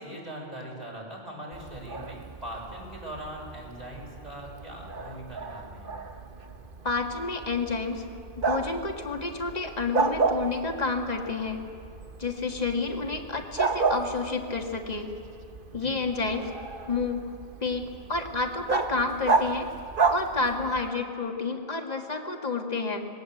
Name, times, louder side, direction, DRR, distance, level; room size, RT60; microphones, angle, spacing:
voice 1, 0.0-5.9 15.8-16.0, right 1 dB, 40° right, -3 dB, 6.3 m, -41 dB
Bark, 1.5-20.9, right 4 dB, 55° right, 1.3 m, -32 dB
voice 2, 6.8-8.1 8.4-11.6 12.2-15.1 15.7-16.5 16.9-17.3 17.6-19.7 20.1-23.1, left 4 dB, 40° left, 3 dB, 2.0 m, -30 dB
27.0 x 20.5 x 7.9 m, 2.5 s
omnidirectional pair, 1.1 m